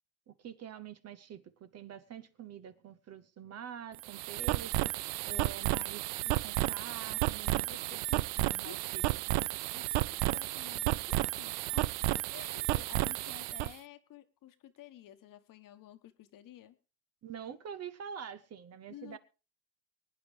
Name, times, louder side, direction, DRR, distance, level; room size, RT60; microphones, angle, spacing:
voice 1, 0.3-7.7 8.1-9.0 9.3-9.4 17.2-19.2, right 8 dB, 35° right, 0.8 m, -46 dB
sound 1, 3.9-13.7, right 19 dB, 60° right, 0.6 m, -32 dB
voice 2, 7.5-8.2 8.6-8.7 9.7-11.9 12.2-16.8 18.9-19.2, left 12 dB, 45° left, 1.4 m, -52 dB
24.0 x 9.5 x 3.4 m
hypercardioid pair, 95°, 47 cm